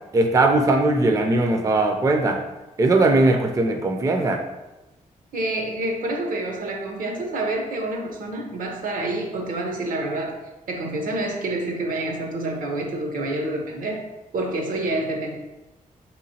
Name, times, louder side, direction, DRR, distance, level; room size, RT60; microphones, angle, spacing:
voice 1, 0.1-2.4 2.8-4.4, right 2 dB, 25° right, 4 dB, 0.3 m, -19 dB
voice 2, 5.3-10.3 10.7-14.0 14.3-15.4, right 2 dB, 80° right, 2 dB, 0.7 m, -27 dB
3.5 x 3.0 x 2.7 m, 1.0 s
cardioid pair, 95°, 14 cm